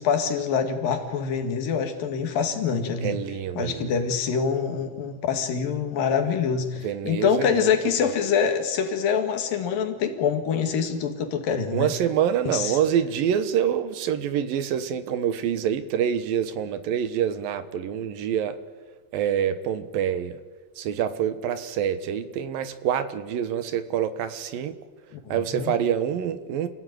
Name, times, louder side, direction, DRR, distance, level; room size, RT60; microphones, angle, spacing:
voice 1, 0.0-3.2 3.6-11.9 12.5-12.8 25.3-25.7, left 6 dB, 75° left, 6 dB, 3.7 m, -25 dB
voice 2, 3.0-3.9 6.8-7.8 11.7-18.6 19.1-20.4 20.8-24.8 25.3-26.7, right 9 dB, 80° right, 12 dB, 3.0 m, -26 dB
28.0 x 16.5 x 9.4 m, 1.4 s
omnidirectional pair, 4.1 m